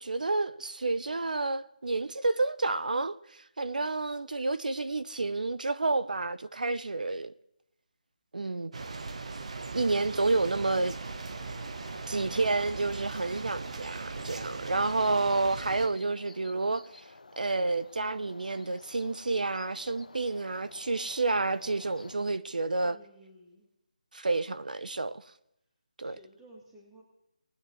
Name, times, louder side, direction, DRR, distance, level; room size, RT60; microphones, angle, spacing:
voice 1, 0.0-3.2 3.6-7.3 8.3-8.7 9.7-10.9 12.1-16.8 17.4-23.0 24.1-25.2 26.0-26.2, right 3 dB, 80° right, 0.8 m, -29 dB
sound 1, 8.7-15.9, right 3 dB, 55° right, 1.0 m, -39 dB
sound 2, 10.4-22.2, left 3 dB, 80° left, 1.2 m, -53 dB
voice 2, 22.8-23.7 26.0-27.0, right 1 dB, 5° right, 1.9 m, -55 dB
19.5 x 9.8 x 3.1 m
figure-of-eight pair, 170°, 4 cm